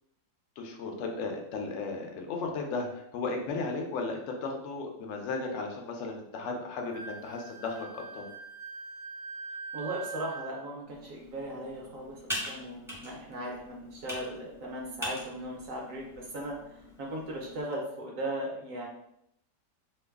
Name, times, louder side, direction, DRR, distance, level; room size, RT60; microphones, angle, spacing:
voice 1, 0.6-8.3, left 3 dB, 90° left, 2 dB, 0.6 m, -35 dB
Wind instrument woodwind instrument, 6.9-10.6, right 4 dB, 85° right, 0.6 m, -43 dB
voice 2, 9.7-18.9, right 1 dB, 60° right, -2 dB, 0.9 m, -38 dB
Computer keyboard, 10.9-17.6, left 1 dB, 5° right, 0.5 m, -42 dB
3.1 x 2.2 x 3.4 m, 0.76 s
omnidirectional pair, 2.0 m